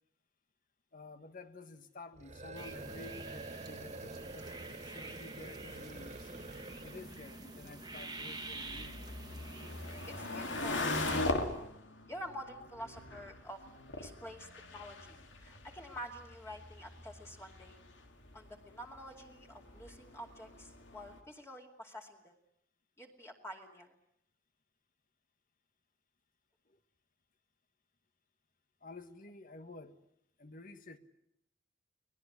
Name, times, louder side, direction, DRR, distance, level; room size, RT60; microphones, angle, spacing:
voice 1, 0.9-6.3 6.8-9.2 26.7-26.8 28.8-30.0 30.4-31.0, left 3 dB, 50° left, 1.6 m, -51 dB
sound 1, 2.1-7.1, right 3 dB, 40° right, 1.0 m, -47 dB
sound 2, 2.5-11.2, right 2 dB, 20° right, 1.8 m, -48 dB
sound 3, 5.6-21.2, left 2 dB, 80° left, 3.0 m, -42 dB
voice 2, 10.2-11.7 12.1-13.6 13.9-15.0 15.4-17.8 18.3-22.3 23.0-23.9, equal, 15° left, 2.6 m, -48 dB
24.0 x 19.5 x 9.8 m
head